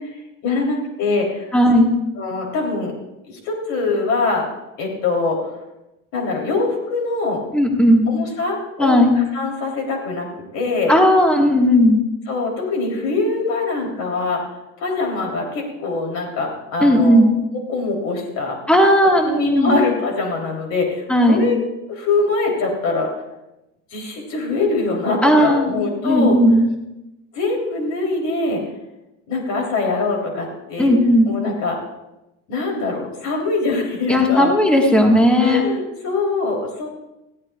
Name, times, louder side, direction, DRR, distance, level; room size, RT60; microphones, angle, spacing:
voice 1, 0.0-1.5 2.2-2.9 3.3-4.5 4.8-5.4 6.1-7.4 8.1-10.9 12.3-14.4 14.8-17.2 17.7-18.6 19.2-21.6 21.9-23.1 23.9-26.4 27.3-28.6 29.3-30.9 31.3-31.8 32.5-34.6 35.4-36.9, left 3 dB, 50° left, 0 dB, 3.4 m, -23 dB
voice 2, 1.5-1.9 7.5-8.1 8.8-9.2 10.9-12.0 16.8-17.3 18.7-19.7 21.1-21.4 25.2-26.7 30.8-31.3 34.1-35.6, equal, 5° left, 0 dB, 1.5 m, -15 dB
21.0 x 15.5 x 2.4 m, 0.95 s
cardioid pair, 175°, 36 cm